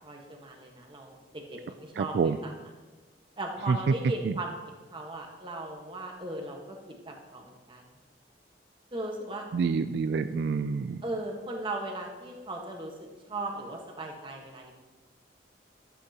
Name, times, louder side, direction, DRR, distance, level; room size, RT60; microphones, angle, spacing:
voice 1, 0.0-2.5 3.4-4.5 4.9-6.8 7.1-7.8 8.9-9.5 11.0-12.9 13.3-14.7, right 2 dB, 30° right, 1 dB, 1.3 m, -37 dB
voice 2, 2.0-2.4 3.7-3.9 4.2-4.3 9.5-11.0, right 5 dB, 65° right, 10 dB, 0.3 m, -27 dB
13.5 x 8.2 x 2.9 m, 1.3 s
head